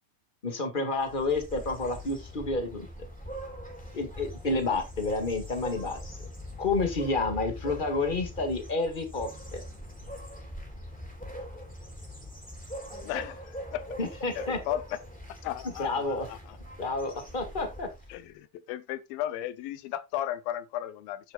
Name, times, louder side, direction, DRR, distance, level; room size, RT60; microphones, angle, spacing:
voice 1, 0.4-2.9 3.9-6.2 6.6-9.6 14.0-14.6 15.8-16.3 16.8-17.9, left 3 dB, 20° left, 1.3 m, -30 dB
sound 1, 1.0-18.3, equal, ahead, 3.5 m, -42 dB
voice 2, 13.0-13.8 14.4-15.0 15.4-16.6 18.1-21.3, left 12 dB, 80° left, 2.5 m, -35 dB
10.5 x 9.7 x 2.5 m
omnidirectional pair, 4.2 m